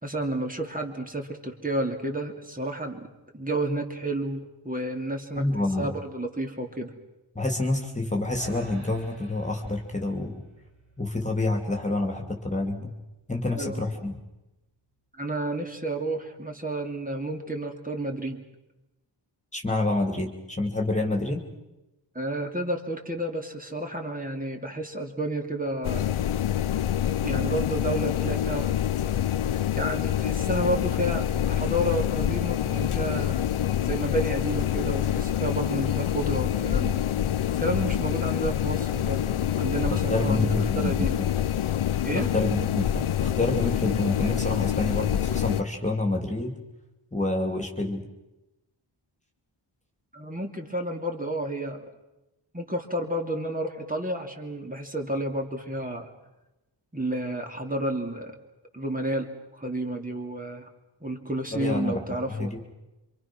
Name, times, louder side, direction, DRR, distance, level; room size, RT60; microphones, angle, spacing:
voice 1, 0.0-3.1 3.3-5.5 5.8-6.9 13.5-13.8 15.1-18.4 22.1-26.2 27.2-28.7 29.7-33.4 33.8-37.1 37.6-41.1 42.0-42.3 50.1-51.9 52.5-56.1 56.9-58.3 58.7-60.7 61.0-62.5, right 1 dB, 15° right, 2 dB, 2.9 m, -31 dB
voice 2, 5.4-5.9 7.3-10.4 11.0-12.9 13.3-14.2 19.5-21.4 39.9-41.3 42.1-46.6 47.1-48.1 61.5-62.6, left 2 dB, 15° left, 3 dB, 2.8 m, -28 dB
sound 1, 8.3-14.7, right 2 dB, 70° right, 5.6 m, -51 dB
sound 2, 25.8-45.6, left 11 dB, 85° left, 0.8 m, -26 dB
27.5 x 25.5 x 6.2 m, 1.0 s
wide cardioid pair, 115°, 48 cm